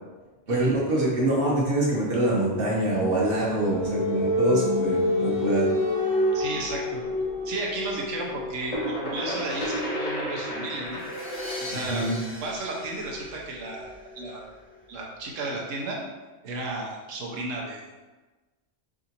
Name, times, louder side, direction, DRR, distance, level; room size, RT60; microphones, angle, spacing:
voice 1, 0.5-5.7 11.9-12.2, right 1 dB, 50° right, -5 dB, 1.1 m, -25 dB
sound 1, 2.6-14.1, left 1 dB, 80° left, 1.0 m, -30 dB
voice 2, 6.3-7.0 7.4-11.0 11.6-12.1 12.4-14.6 14.9-16.0 16.4-17.8, right 2 dB, 90° right, -2 dB, 1.1 m, -33 dB
sound 2, 8.3-13.8, equal, 45° left, 0.7 m, -34 dB
sound 3, 10.9-13.9, equal, 15° right, 0.5 m, -39 dB
4.8 x 2.5 x 2.8 m, 1.2 s
omnidirectional pair, 1.3 m